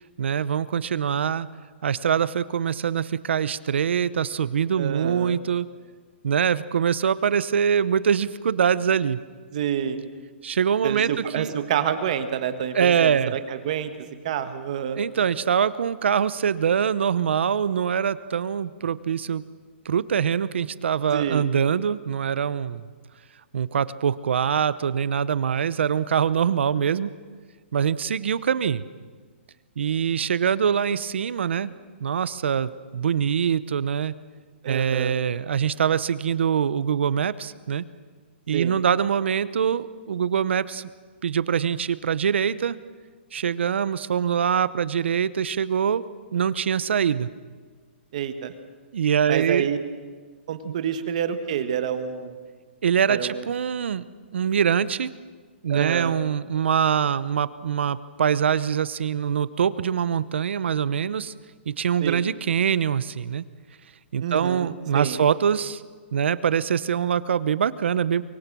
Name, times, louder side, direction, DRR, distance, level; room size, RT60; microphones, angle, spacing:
voice 1, 0.2-1.5 1.8-5.7 6.2-9.2 10.4-11.5 12.7-13.3 15.0-19.4 19.8-22.9 23.5-27.1 27.7-28.8 29.8-31.7 32.0-34.1 34.7-37.8 38.5-40.9 41.2-42.8 43.3-46.0 46.3-47.3 48.9-49.7 50.6-50.7 52.8-54.0 54.3-55.1 55.6-61.3 61.7-63.4 64.1-65.8 66.1-68.2, right 8 dB, 70° right, 16 dB, 0.8 m, -24 dB
voice 2, 4.8-5.4 9.5-10.0 10.8-15.0 21.1-21.4 34.6-35.1 38.5-38.7 48.1-48.5 49.3-49.8 50.5-52.4 53.1-53.4 55.7-56.2 62.0-62.2 64.2-65.2, right 8 dB, 35° right, 9 dB, 1.5 m, -28 dB
23.5 x 23.0 x 6.2 m, 1.5 s
hypercardioid pair, 175°, 6 cm